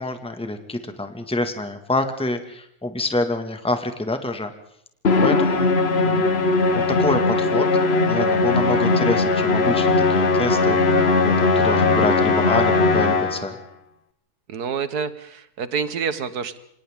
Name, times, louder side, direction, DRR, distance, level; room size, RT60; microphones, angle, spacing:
voice 1, 0.0-4.5 5.2-5.7 6.0-6.3 6.9-7.7 8.1-9.9 10.2-10.8 11.2-13.5, left 2 dB, 5° left, 7 dB, 1.8 m, -26 dB
Musical instrument, 5.0-13.6, left 3 dB, 45° left, 1.5 m, -19 dB
voice 2, 14.5-16.6, right 6 dB, 90° right, 12 dB, 1.8 m, -27 dB
29.0 x 25.5 x 3.7 m, 0.72 s
omnidirectional pair, 1.6 m